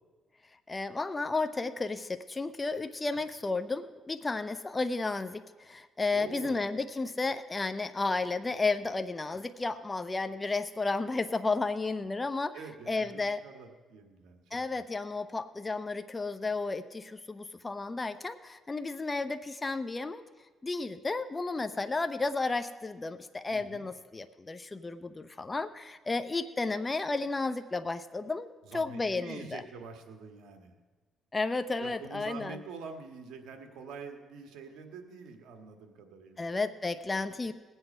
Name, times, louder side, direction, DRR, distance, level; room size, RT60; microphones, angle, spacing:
voice 1, 0.7-12.6 12.9-13.4 14.5-20.2 20.6-28.5 28.7-29.6 31.3-32.6 36.4-37.5, left 3 dB, 25° left, 10 dB, 0.6 m, -33 dB
voice 2, 6.1-6.6 12.5-14.6 23.5-23.9 28.6-30.8 31.8-36.5, right 5 dB, 85° right, 5 dB, 1.5 m, -46 dB
19.5 x 8.0 x 5.5 m, 1.3 s
cardioid pair, 90°, 0 cm